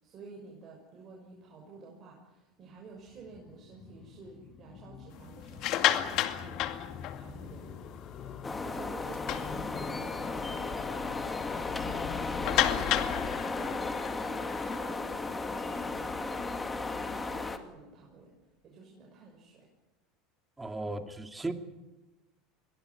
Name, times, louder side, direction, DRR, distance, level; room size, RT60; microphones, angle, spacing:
voice 1, 0.0-7.8 8.2-8.4 8.6-13.7 14.2-18.3 18.6-19.7 20.8-21.0, right 3 dB, 40° right, -1 dB, 6.4 m, -51 dB
sound 1, 3.0-16.0 16.3-16.4 16.6-16.7 16.9-17.0, left 8 dB, 35° left, 1.8 m, -43 dB
sound 2, 5.4-7.6 8.0-8.2 8.6-8.7 9.1-10.1 10.6-10.7 11.0-11.1 12.4-15.8, left 12 dB, 60° left, 2.3 m, -31 dB
sound 3, 8.4-17.6, left 3 dB, 15° left, 2.3 m, -35 dB
voice 2, 20.6-21.5, right 2 dB, 10° right, 6 dB, 2.7 m, -36 dB
23.5 x 18.5 x 9.8 m, 1.1 s
supercardioid pair, 100°, 0 cm